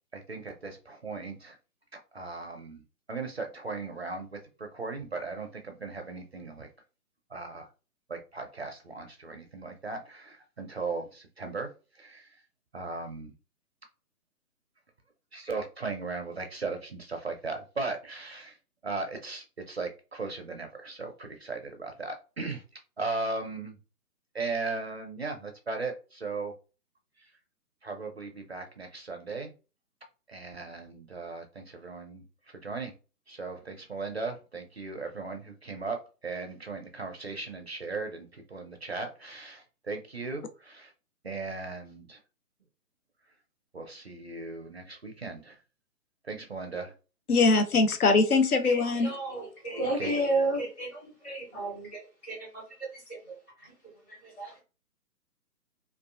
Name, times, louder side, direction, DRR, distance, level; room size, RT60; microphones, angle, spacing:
voice 1, 0.1-1.6 1.9-2.8 3.1-6.7 7.3-7.7 8.1-12.4 12.7-13.3 15.3-18.6 18.8-22.6 23.0-23.8 24.3-26.5 27.2-27.3 27.8-29.5 30.3-32.9 33.3-40.9 41.2-42.2 43.7-45.6 46.2-46.9 49.9-50.1, right 3 dB, 45° right, 0.4 m, -37 dB
voice 2, 47.3-49.1, left 3 dB, 70° left, 0.6 m, -22 dB
voice 3, 48.6-53.2 53.6-53.7 54.1-54.6, right 2 dB, 10° left, 0.7 m, -33 dB
3.0 x 2.4 x 2.3 m
figure-of-eight pair, 140°, 47 cm